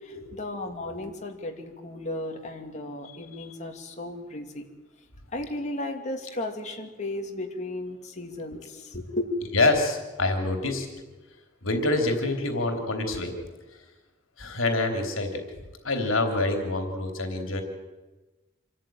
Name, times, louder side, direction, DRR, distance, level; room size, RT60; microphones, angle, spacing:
voice 1, 0.0-4.7 5.3-9.4, left 2 dB, 35° left, 2 dB, 2.9 m, -34 dB
voice 2, 9.5-10.9 11.6-13.4 14.4-15.4 15.8-17.6, left 2 dB, 80° left, 5 dB, 3.4 m, -26 dB
26.5 x 14.0 x 9.5 m, 1.2 s
head